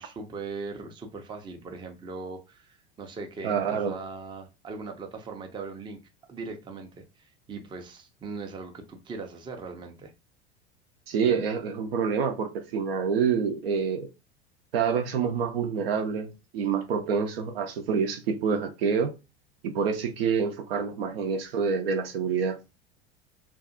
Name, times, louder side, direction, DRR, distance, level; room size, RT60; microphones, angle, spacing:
voice 1, 0.0-6.0 6.3-10.1, right 4 dB, 15° right, 0.5 m, -39 dB
voice 2, 3.4-4.0 11.1-14.1 14.7-19.1 19.6-22.6, right 6 dB, 65° right, 0.6 m, -27 dB
2.6 x 2.4 x 2.5 m
figure-of-eight pair, 75°, 32 cm